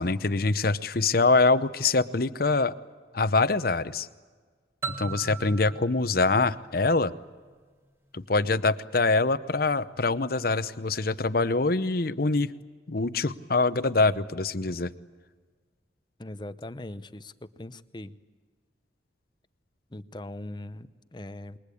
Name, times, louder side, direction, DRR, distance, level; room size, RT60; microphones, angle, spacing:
voice 1, 0.0-2.7 3.1-4.1 5.0-7.1 8.1-12.5 12.9-14.9, left 3 dB, 50° left, 14 dB, 0.8 m, -24 dB
sound 1, 4.8-7.5, right 4 dB, 15° right, 1.6 m, -39 dB
voice 2, 16.2-18.2 19.9-21.6, left 1 dB, 25° left, 13 dB, 0.7 m, -40 dB
28.0 x 22.0 x 8.5 m, 1.5 s
head